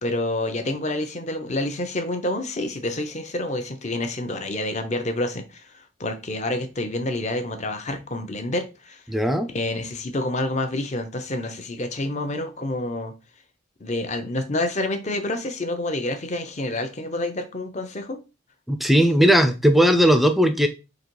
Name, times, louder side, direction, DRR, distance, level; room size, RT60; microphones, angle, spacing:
voice 1, 0.0-9.0 9.5-13.1 13.8-18.2, left 1 dB, 35° left, 7 dB, 0.7 m, -28 dB
voice 2, 9.1-9.5 18.7-20.7, equal, ahead, 8 dB, 0.4 m, -17 dB
3.9 x 2.9 x 4.6 m, 0.29 s
head